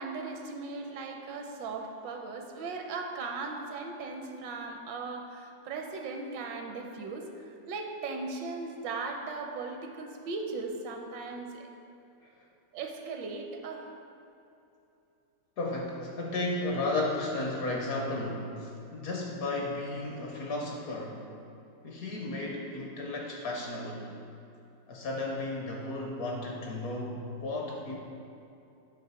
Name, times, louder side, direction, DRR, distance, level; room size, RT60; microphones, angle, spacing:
voice 1, 0.0-11.7 12.7-13.9, right 3 dB, 75° right, 3 dB, 1.3 m, -38 dB
voice 2, 15.6-21.2 21.8-24.1 24.9-28.0, left 2 dB, 60° left, -1 dB, 1.0 m, -34 dB
8.7 x 3.1 x 5.5 m, 2.8 s
omnidirectional pair, 2.1 m